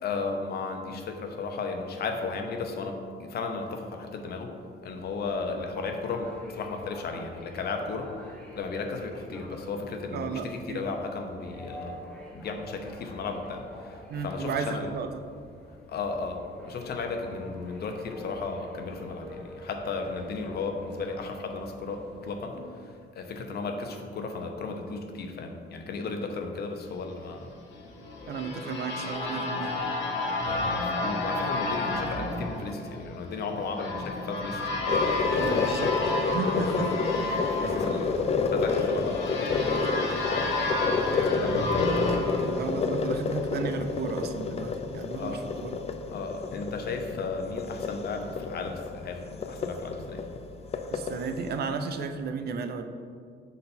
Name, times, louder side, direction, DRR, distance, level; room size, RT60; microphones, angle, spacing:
voice 1, 0.0-4.5 4.8-8.1 8.5-12.0 12.3-13.6 14.2-14.9 15.9-22.7 23.1-27.5 30.4-34.8 35.3-35.8 37.3-38.2 38.5-39.4 40.3-40.9 41.4-41.7 42.0-42.4 45.1-45.7 46.1-50.2, left 4 dB, 60° left, 4 dB, 0.8 m, -35 dB
sound 1, 4.9-22.4, left 1 dB, 5° left, 1.1 m, -47 dB
voice 2, 10.1-10.9 14.1-15.2 28.3-29.8 35.4-36.0 36.3-37.5 37.9-38.0 42.4-45.8 50.9-52.8, right 4 dB, 60° right, 7 dB, 0.5 m, -34 dB
sound 2, 27.7-43.4, left 2 dB, 80° left, 0.9 m, -31 dB
sound 3, 34.9-51.6, left 4 dB, 35° left, 0.4 m, -30 dB
6.7 x 4.1 x 4.1 m, 2.2 s
cardioid pair, 125°, 19 cm